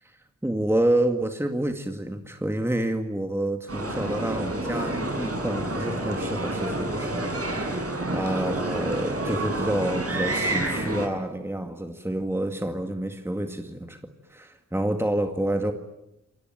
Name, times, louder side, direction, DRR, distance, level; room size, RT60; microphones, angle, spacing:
voice 1, 0.0-14.0 14.3-15.7, right 1 dB, 10° right, 5 dB, 2.0 m, -28 dB
sound 1, 3.7-11.1, right 1 dB, 55° right, 6.9 m, -29 dB
28.5 x 22.5 x 9.2 m, 0.88 s
wide cardioid pair, 85°, 29 cm